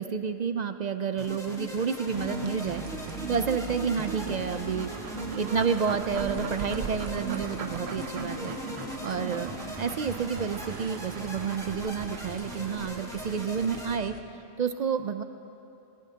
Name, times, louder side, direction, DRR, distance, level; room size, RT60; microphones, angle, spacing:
voice 1, 0.0-2.8 3.3-4.9 5.4-8.5 9.0-14.1 14.6-15.2, right 6 dB, 55° right, 9 dB, 0.5 m, -30 dB
sound 1, 1.2-14.0, left 1 dB, 5° left, 1.4 m, -40 dB
sound 2, 2.1-9.7, right 2 dB, 45° left, 3.6 m, -38 dB
sound 3, 2.1-14.2, right 6 dB, 75° right, 1.0 m, -41 dB
20.5 x 19.0 x 2.8 m, 2.8 s
omnidirectional pair, 1.1 m